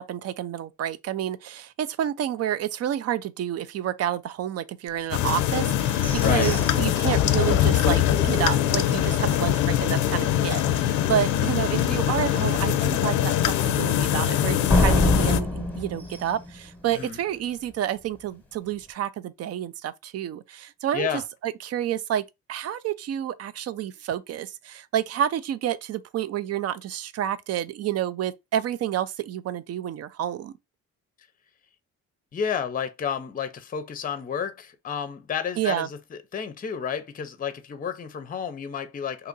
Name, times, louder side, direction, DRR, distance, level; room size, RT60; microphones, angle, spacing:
voice 1, 0.0-22.2 22.5-30.5 35.6-35.9, right 10 dB, 55° right, 0.5 m, -29 dB
sound 1, 5.1-15.4, left 11 dB, 80° left, 0.5 m, -23 dB
sound 2, 5.9-9.3 9.7-9.8 10.2-10.6 11.0-11.1 11.6-11.7 14.7-17.4, left 1 dB, 5° left, 1.0 m, -28 dB
voice 2, 6.2-6.5 9.1-9.4 17.0-17.2 20.9-21.2 32.3-39.3, left 7 dB, 30° left, 0.6 m, -31 dB
2.8 x 2.5 x 3.8 m
cardioid pair, 90°, 30 cm